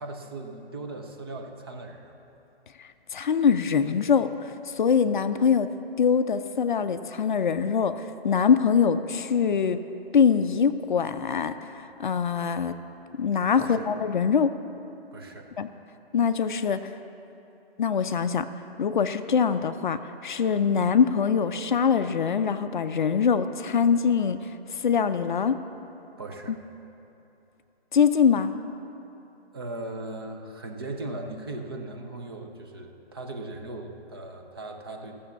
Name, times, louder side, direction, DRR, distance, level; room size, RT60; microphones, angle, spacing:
voice 1, 0.0-2.2 13.6-13.9 15.1-15.5 26.2-26.6 29.5-35.1, right 2 dB, 25° right, 3 dB, 0.6 m, -38 dB
voice 2, 2.8-5.7 6.0-9.8 10.1-12.7 13.2-14.6 15.6-15.7 16.1-16.9 17.8-18.5 18.8-24.4 24.8-25.6 27.9-28.5, left 6 dB, 50° left, 10 dB, 0.5 m, -23 dB
14.5 x 7.0 x 6.9 m, 2.9 s
hypercardioid pair, 165°, 31 cm